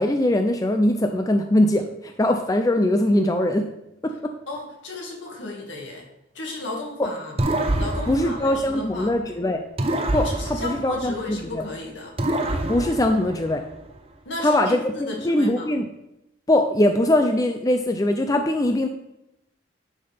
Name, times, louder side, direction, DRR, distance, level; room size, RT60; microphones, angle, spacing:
voice 1, 0.0-3.7 4.0-4.3 7.0-7.1 8.1-9.6 10.1-11.6 12.7-13.6 14.4-15.9 16.5-18.9, left 1 dB, 20° left, 6 dB, 0.4 m, -21 dB
voice 2, 4.5-6.1 6.3-7.4 7.8-9.1 10.2-12.1 14.3-15.7, left 2 dB, 70° left, 0 dB, 2.0 m, -34 dB
sound 1, 7.4-9.3 9.8-11.7 12.2-13.9, right 1 dB, 30° right, 0.6 m, -27 dB
10.5 x 5.7 x 3.4 m, 0.87 s
head